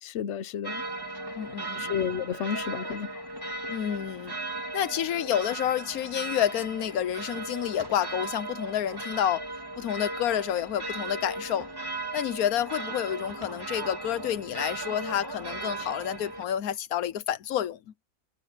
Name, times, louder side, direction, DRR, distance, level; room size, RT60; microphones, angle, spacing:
voice 1, 0.0-0.8 1.8-3.1, left 8 dB, 55° left, 1.0 m, -31 dB
sound 1, 0.6-16.4, right 2 dB, 15° right, 3.1 m, -37 dB
voice 2, 1.4-1.9 3.7-4.3 4.7-9.4 9.8-11.7 12.1-17.8, left 10 dB, 85° left, 1.2 m, -29 dB
omnidirectional pair, 1.5 m